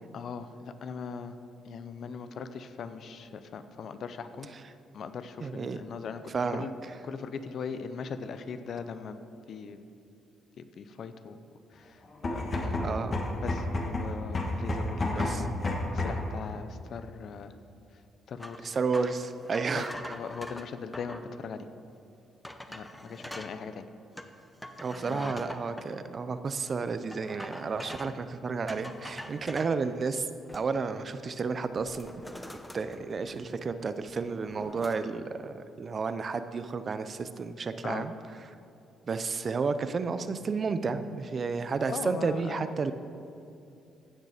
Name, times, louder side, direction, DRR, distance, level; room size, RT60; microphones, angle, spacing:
voice 1, 0.1-1.3 1.6-4.5 4.9-6.2 6.5-6.7 7.0-9.2 9.5-9.8 10.8-11.4 11.7-12.0 12.3-13.0 13.4-17.5 17.9-18.0 18.3-18.7 19.7-19.8 20.1-21.7 22.7-23.8 25.1-25.4 37.8-38.1 41.9-42.7, left 6 dB, 60° left, 10 dB, 0.7 m, -40 dB
voice 2, 5.4-5.8 6.3-6.6 12.8-13.2 15.2-15.4 18.6-20.2 23.3-23.4 24.8-30.3 30.5-32.1 32.7-38.1 39.0-42.9, right 4 dB, 40° right, 11 dB, 0.6 m, -32 dB
sound 1, 12.1-16.3, left 2 dB, 40° left, 1.7 m, -30 dB
sound 2, 18.4-21.3 21.9-22.0 22.4-23.6 24.2-25.9 27.1-28.2 28.7-29.8 30.2-30.9 31.2-31.4 31.8-33.7 34.0-35.0, left 1 dB, 10° left, 0.8 m, -44 dB
15.5 x 6.6 x 5.0 m, 2.6 s
cardioid pair, 90°, 0 cm